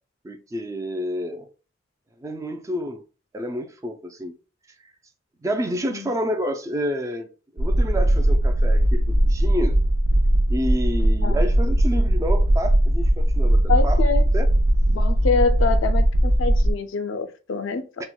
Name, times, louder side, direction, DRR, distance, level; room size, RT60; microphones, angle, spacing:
voice 1, 0.2-1.5 2.2-3.0 3.3-4.3 5.4-7.3 7.5-9.8 10.5-14.0 14.3-14.5 18.0-18.1, equal, 15° right, 0.3 m, -29 dB
sound 1, 7.6-16.7, right 1 dB, 80° right, 0.5 m, -19 dB
voice 2, 13.7-14.3 14.9-18.1, left 4 dB, 75° left, 0.4 m, -26 dB
4.3 x 2.1 x 2.2 m
head